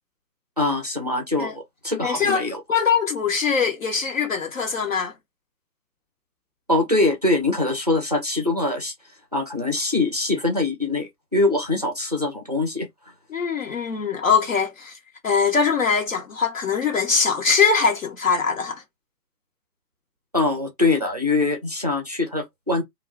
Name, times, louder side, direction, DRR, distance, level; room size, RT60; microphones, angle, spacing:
voice 1, 0.6-2.6 6.7-8.9 9.3-12.9 20.3-22.8, left 2 dB, 25° right, 0.4 m, -23 dB
voice 2, 2.0-2.4 2.7-5.1 13.3-15.0 15.2-18.8, left 5 dB, 55° left, 0.6 m, -22 dB
2.3 x 2.1 x 3.2 m
figure-of-eight pair, 130°, 50 cm